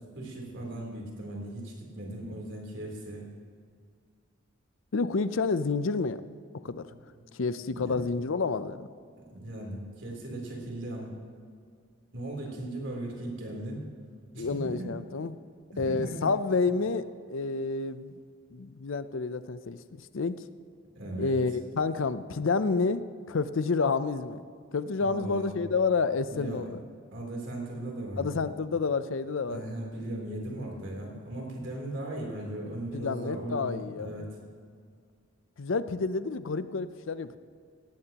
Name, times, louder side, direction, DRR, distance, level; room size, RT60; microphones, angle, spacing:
voice 1, 0.2-3.3 6.9-7.2 7.7-8.0 9.3-11.1 12.1-13.8 14.3-14.9 15.7-16.2 21.0-21.4 25.0-25.5 26.3-26.7 27.1-28.4 29.5-34.3, right 1 dB, 65° right, -1 dB, 3.5 m, -38 dB
voice 2, 4.9-6.2 6.6-6.9 7.4-8.9 14.4-15.4 15.8-18.1 18.5-20.4 21.2-23.0 23.3-24.4 24.7-26.8 28.2-29.6 32.9-34.3 35.6-37.4, left 4 dB, 70° left, 13 dB, 0.5 m, -29 dB
17.5 x 15.5 x 3.0 m, 2.1 s
head